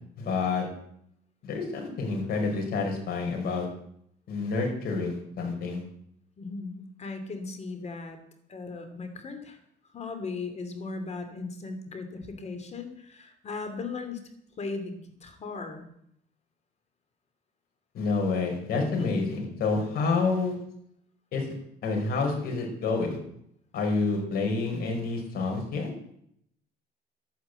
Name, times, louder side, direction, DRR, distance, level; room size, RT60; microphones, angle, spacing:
voice 1, 0.2-0.7 1.4-3.7 4.3-5.8 17.9-20.5 21.3-21.4 21.8-23.2 23.7-25.9, left 4 dB, 65° left, 1 dB, 5.3 m, -28 dB
voice 2, 6.4-8.2 8.5-9.6 9.9-14.2 14.6-15.9 19.0-19.2, left 3 dB, 40° left, 7 dB, 2.8 m, -37 dB
11.5 x 9.7 x 8.1 m, 0.72 s
cardioid pair, 110°, 17 cm